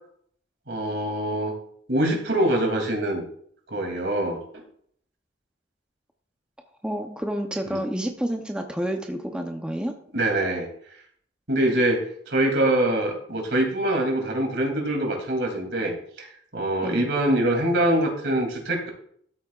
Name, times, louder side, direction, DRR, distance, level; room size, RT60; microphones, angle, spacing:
voice 1, 0.7-1.5 1.9-3.3 3.7-4.6 7.7-7.8 10.1-10.7 11.5-18.9, right 1 dB, 70° right, 2 dB, 2.8 m, -24 dB
voice 2, 6.8-9.9 16.8-17.1, equal, 5° right, 3 dB, 0.7 m, -29 dB
13.0 x 8.3 x 2.4 m, 0.62 s
head